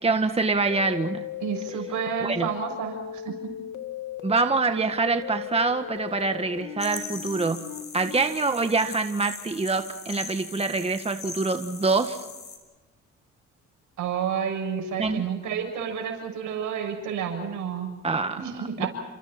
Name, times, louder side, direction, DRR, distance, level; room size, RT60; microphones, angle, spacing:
voice 1, 0.0-1.2 2.2-2.5 4.2-7.6 7.9-12.2 15.0-15.2 18.0-18.4 18.8-18.9, right 3 dB, 20° right, 7 dB, 1.8 m, -25 dB
sound 1, 0.7-8.2, left 11 dB, 70° left, 2.2 m, -38 dB
voice 2, 1.4-3.3 14.0-17.9 18.4-18.9, right 7 dB, 80° right, 3 dB, 7.0 m, -30 dB
sound 2, 6.8-12.6, left 4 dB, 35° left, 5.9 m, -40 dB
30.0 x 28.0 x 4.4 m, 1.2 s
cardioid pair, 90°, 30 cm